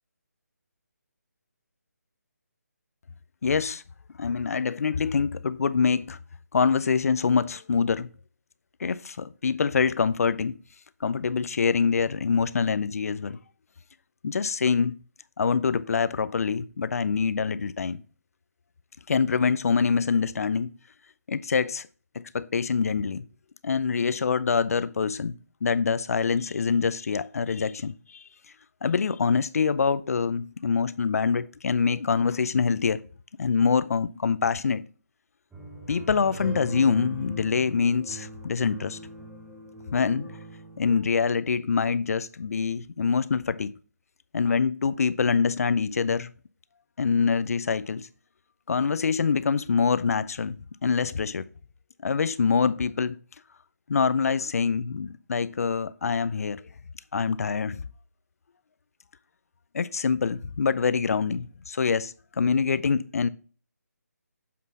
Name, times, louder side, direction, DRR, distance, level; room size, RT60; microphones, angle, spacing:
voice 1, 3.4-3.8 4.2-6.2 6.5-8.1 8.8-10.6 11.0-13.4 14.2-15.0 15.4-18.0 19.1-20.7 21.3-21.9 22.1-23.2 23.6-28.2 28.8-33.0 33.4-34.8 35.9-39.0 39.9-40.3 40.8-43.7 44.3-46.3 47.0-48.1 48.7-50.6 50.8-51.5 52.0-53.2 53.9-56.6 57.1-57.8 59.7-63.3, left 5 dB, 60° left, 0.5 m, -25 dB
sound 1, 35.5-41.0, right 1 dB, 5° right, 0.8 m, -41 dB
7.4 x 4.0 x 4.1 m
figure-of-eight pair, 160°, 9 cm